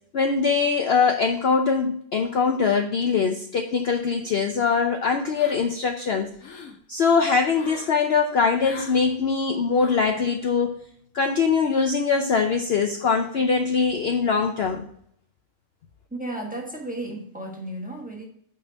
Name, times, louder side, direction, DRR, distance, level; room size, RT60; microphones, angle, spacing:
voice 1, 0.1-6.3 6.9-10.8 11.1-14.9, left 5 dB, 55° left, 5 dB, 0.8 m, -22 dB
sound 1, 5.4-5.9 6.2-6.8 7.5-8.0 8.6-9.0 9.8-10.1, left 5 dB, 80° left, 1.5 m, -42 dB
voice 2, 16.1-18.3, right 1 dB, 5° right, 0 dB, 1.2 m, -34 dB
8.9 x 3.6 x 5.1 m, 0.68 s
omnidirectional pair, 1.5 m